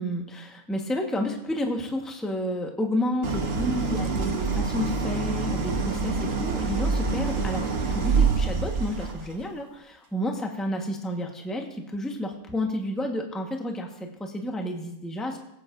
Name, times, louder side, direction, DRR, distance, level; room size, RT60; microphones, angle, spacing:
voice 1, 0.0-15.4, left 1 dB, ahead, 2 dB, 1.0 m, -31 dB
Idling, 3.2-9.3, right 4 dB, 45° right, 1.1 m, -26 dB
21.5 x 8.7 x 2.5 m, 0.81 s
omnidirectional pair, 1.5 m